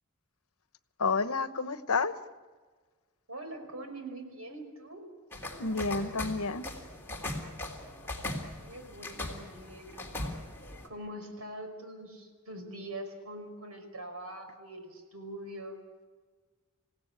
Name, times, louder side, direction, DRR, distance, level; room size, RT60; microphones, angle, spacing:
voice 1, 1.0-2.1 5.6-6.7, left 4 dB, 85° left, 12 dB, 1.1 m, -30 dB
voice 2, 3.3-5.0 8.6-10.1 10.8-15.8, right 1 dB, 85° right, 5 dB, 5.4 m, -43 dB
sound 1, 5.3-10.9, left 1 dB, 10° left, 3.3 m, -39 dB
27.5 x 17.0 x 8.8 m, 1.4 s
head